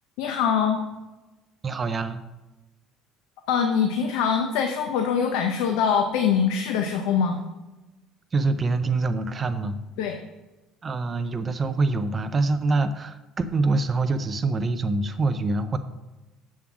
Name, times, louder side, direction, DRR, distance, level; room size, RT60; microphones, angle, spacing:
voice 1, 0.2-0.8 3.5-7.4 10.0-10.2, left 7 dB, 85° left, 5 dB, 0.9 m, -23 dB
voice 2, 1.6-2.2 8.3-9.8 10.8-15.8, right 3 dB, 20° right, 9 dB, 0.6 m, -25 dB
7.7 x 7.4 x 5.9 m, 1.1 s
cardioid pair, 175°, 0 cm